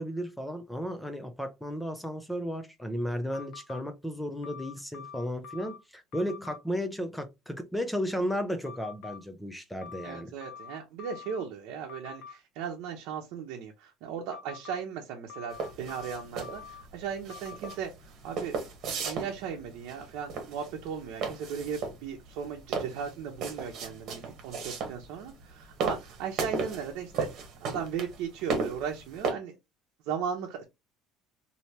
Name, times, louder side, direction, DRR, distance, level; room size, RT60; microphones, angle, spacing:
voice 1, 0.0-10.3, equal, 5° left, 0.4 m, -34 dB
sound 1, 3.3-3.8 4.4-5.8 6.1-6.6 8.7-9.2 9.8-11.4 11.9-12.3 14.3-14.8 15.3-16.8 17.3-17.8, left 7 dB, 65° left, 0.7 m, -45 dB
voice 2, 10.0-18.6 19.0-27.3 27.6-29.5 30.1-30.6, right 7 dB, 65° right, 0.7 m, -37 dB
sound 2, 15.5-29.3, right 5 dB, 40° right, 1.1 m, -35 dB
3.2 x 2.7 x 2.8 m
cardioid pair, 175°, 0 cm